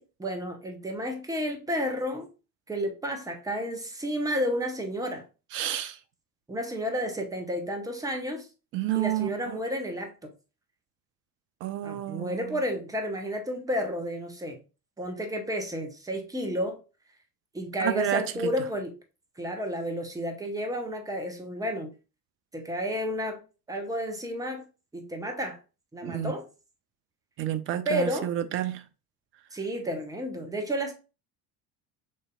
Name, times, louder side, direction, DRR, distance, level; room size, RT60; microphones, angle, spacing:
voice 1, 0.0-2.3 2.7-5.2 6.5-8.5 8.9-10.3 11.8-14.6 15.0-16.8 17.5-18.9 19.4-21.9 22.5-23.4 23.7-24.6 24.9-25.6 25.9-26.5 27.8-28.3 29.5-30.9, equal, 5° right, 0.8 m, -31 dB
voice 2, 5.5-6.0 8.7-9.6 11.6-12.6 17.8-18.2 26.0-26.3 27.4-28.8, right 12 dB, 30° right, 0.3 m, -30 dB
6.4 x 2.7 x 2.2 m
figure-of-eight pair, 55°, 48 cm